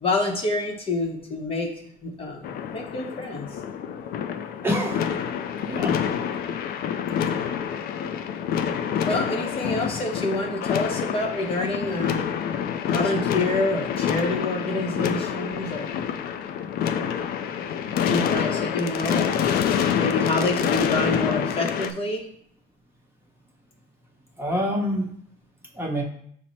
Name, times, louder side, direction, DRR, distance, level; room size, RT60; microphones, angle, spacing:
voice 1, 0.0-1.7 2.0-3.5 9.1-12.3 12.9-15.9 18.0-19.3 20.0-22.3, left 2 dB, 35° left, 1 dB, 0.8 m, -27 dB
sound 1, 2.4-21.9, left 8 dB, 65° left, 0.4 m, -27 dB
voice 2, 4.6-5.2 5.7-6.0 24.4-25.1 25.7-26.0, equal, 15° right, -1 dB, 0.9 m, -26 dB
6.0 x 2.1 x 4.1 m, 0.64 s
cardioid pair, 110°, 17 cm